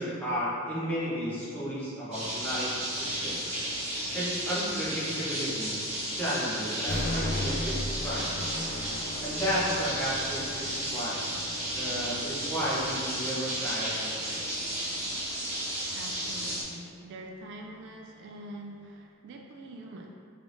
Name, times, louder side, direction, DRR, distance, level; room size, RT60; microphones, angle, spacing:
voice 1, 0.0-2.8 3.1-3.4 4.1-5.7 6.0-8.6 9.2-11.1 11.7-14.4, equal, 10° left, -9 dB, 0.9 m, -33 dB
sound 1, 2.1-16.6, right 1 dB, 30° right, 1.0 m, -33 dB
sound 2, 6.9-14.9, left 1 dB, 35° left, 0.4 m, -38 dB
voice 2, 15.9-20.2, right 1 dB, 55° right, 1 dB, 0.3 m, -44 dB
4.7 x 3.2 x 2.6 m, 2.3 s
head